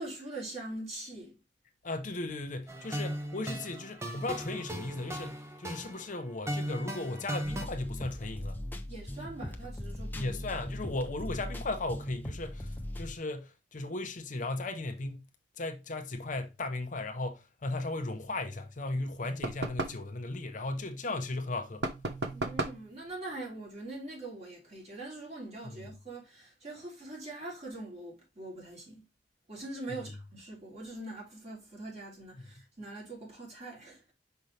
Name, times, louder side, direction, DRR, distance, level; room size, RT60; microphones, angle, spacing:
voice 1, 0.0-1.4 8.9-10.3 22.3-29.1 29.5-34.1, right 2 dB, 40° right, 2.8 m, -43 dB
voice 2, 1.8-8.6 10.1-15.3 15.6-21.9 25.7-25.9 32.4-32.5, left 2 dB, 45° left, 0.8 m, -36 dB
sound 1, 2.7-7.6, equal, 15° right, 0.9 m, -37 dB
sound 2, 7.4-13.1, left 1 dB, 10° left, 0.6 m, -40 dB
sound 3, 19.4-20.1 21.8-22.9, right 2 dB, 70° right, 0.9 m, -34 dB
5.6 x 5.2 x 3.3 m
head